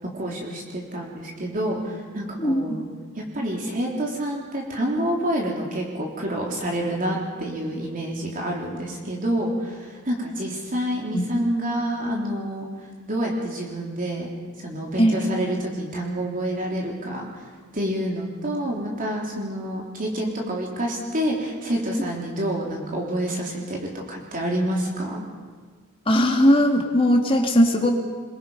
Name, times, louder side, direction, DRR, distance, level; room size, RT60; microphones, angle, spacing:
voice 1, 0.0-2.9 3.2-12.7 13.1-14.3 14.6-17.4 17.7-23.8 24.1-25.2, right 1 dB, 40° right, -1 dB, 3.5 m, -28 dB
voice 2, 2.4-2.8 11.1-11.2 15.0-15.3 26.1-27.9, equal, 25° left, 1 dB, 2.7 m, -19 dB
25.5 x 22.5 x 5.7 m, 1.5 s
head